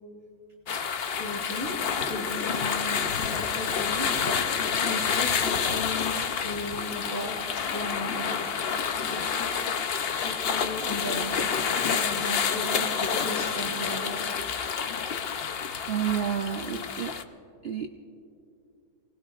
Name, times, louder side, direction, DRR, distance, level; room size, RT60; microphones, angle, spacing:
sound 1, 0.7-17.2, left 6 dB, 55° left, 0.7 m, -29 dB
voice 1, 1.1-1.8 2.0-6.2 6.4-8.6 9.0-9.8 10.2-11.5 11.9-14.3, left 1 dB, 40° right, -5 dB, 4.1 m, -36 dB
sound 2, 1.5-17.0, left 5 dB, 70° left, 1.2 m, -46 dB
voice 2, 15.9-17.2 17.6-17.9, right 9 dB, 60° right, 5 dB, 0.6 m, -30 dB
29.0 x 19.0 x 2.4 m, 2.5 s
omnidirectional pair, 1.7 m